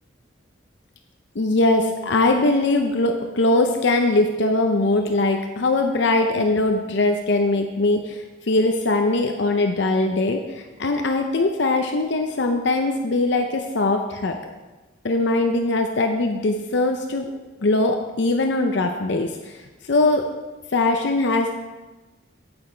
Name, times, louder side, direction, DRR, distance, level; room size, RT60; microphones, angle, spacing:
voice 1, 1.4-14.4 15.0-17.3 17.6-19.6 19.9-20.2 20.7-21.6, left 2 dB, 60° left, 4 dB, 0.6 m, -21 dB
8.7 x 8.7 x 4.4 m, 1.2 s
head